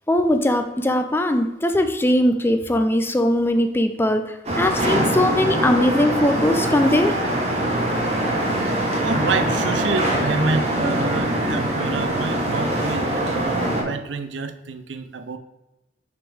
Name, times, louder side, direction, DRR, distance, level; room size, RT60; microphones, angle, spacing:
voice 1, 0.1-4.2 4.5-7.1, left 1 dB, 15° left, 7 dB, 0.4 m, -20 dB
sound 1, 4.4-13.8, right 1 dB, 35° right, 1.2 m, -23 dB
voice 2, 9.0-15.4, right 4 dB, 90° right, 9 dB, 0.5 m, -27 dB
5.8 x 5.3 x 3.5 m, 0.97 s
head